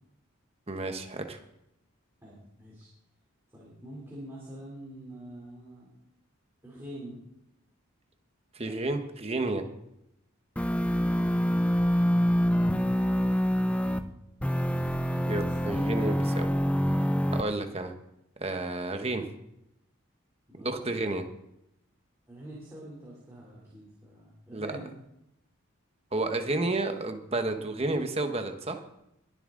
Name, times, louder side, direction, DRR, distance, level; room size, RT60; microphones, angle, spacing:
voice 1, 0.7-1.4 8.5-9.6 15.3-16.5 17.3-17.9 18.4-19.2 20.6-21.2 24.5-24.7 26.1-28.8, right 2 dB, 30° right, 6 dB, 1.1 m, -31 dB
voice 2, 2.2-2.9 3.5-5.9 6.6-7.2 8.6-8.8 11.0-12.0 13.8-14.0 15.1-15.6 20.5-20.9 22.3-24.9, right 1 dB, 15° right, -6 dB, 3.3 m, -46 dB
sound 1, 10.6-14.0 14.4-17.4, equal, 5° left, 0.4 m, -26 dB
21.5 x 7.3 x 3.9 m, 0.82 s
head